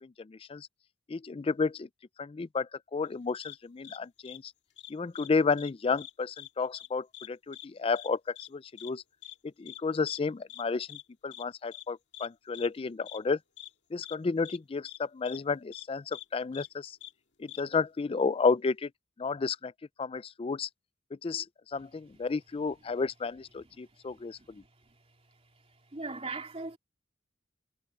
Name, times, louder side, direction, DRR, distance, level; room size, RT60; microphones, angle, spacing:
voice 1, 0.0-0.7 1.1-1.9 2.2-4.5 4.9-9.0 9.6-13.4 13.9-17.0 17.4-18.9 19.2-19.7 20.0-20.7 21.2-21.5 21.7-24.6, left 4 dB, 30° left, 0.4 m, -32 dB
sound 1, 3.4-3.6 3.8-4.0 4.2-4.4 4.8-5.3 5.6-5.7 6.0-6.5 6.7-6.9 7.1-7.3 7.5-7.7 8.0-8.1 8.4-8.5 8.8-8.9 9.2-9.3 9.7-9.8 10.1-10.2 10.5-10.6 10.9-11.0 11.3-11.4 11.7-11.8 12.1-12.3 12.5-12.7 13.1-13.2 13.6-13.7 14.0-14.2 14.4-14.6 14.8-15.0 15.3-15.4 15.7-15.8 16.1-16.2 16.5-16.7 17.0-17.1 17.5-17.6, left 13 dB, 65° left, 2.3 m, -45 dB
voice 2, 24.1-24.5 25.9-26.8, right 3 dB, 30° right, 3.7 m, -39 dB
head